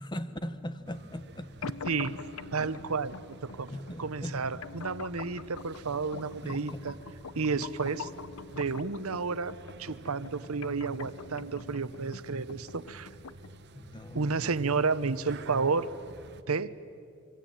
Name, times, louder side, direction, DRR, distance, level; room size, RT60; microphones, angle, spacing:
voice 1, 0.0-1.7 2.6-2.7 3.7-4.6 6.2-6.8 13.7-14.5, left 1 dB, 20° left, 11 dB, 1.2 m, -40 dB
sound 1, 0.8-16.4, right 2 dB, 50° right, 1.1 m, -51 dB
sound 2, 1.6-13.6, left 5 dB, 75° left, 0.7 m, -45 dB
voice 2, 2.5-3.1 3.4-3.7 4.0-7.0 7.4-8.1 8.5-9.5 9.8-13.1 14.1-15.9 16.5-16.7, right 4 dB, 85° right, 15 dB, 0.9 m, -31 dB
26.0 x 23.5 x 9.0 m, 2.4 s
head